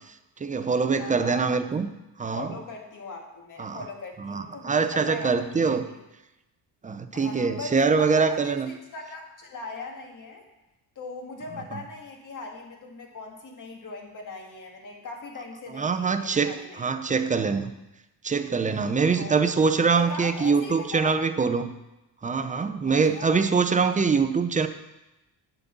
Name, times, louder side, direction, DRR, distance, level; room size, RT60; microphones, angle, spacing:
voice 1, 0.4-1.9 2.2-2.6 3.6-3.8 4.2-5.8 6.8-8.7 11.7-11.8 15.7-17.7 18.2-21.7 22.2-24.7, right 5 dB, 20° right, 10 dB, 0.5 m, -24 dB
voice 2, 1.0-1.6 2.3-6.0 7.1-10.4 11.0-17.5 19.1-19.5 19.9-21.2 22.9-23.4, left 3 dB, 45° left, 1 dB, 1.8 m, -40 dB
9.6 x 4.0 x 7.0 m, 0.96 s
cardioid pair, 120°, 41 cm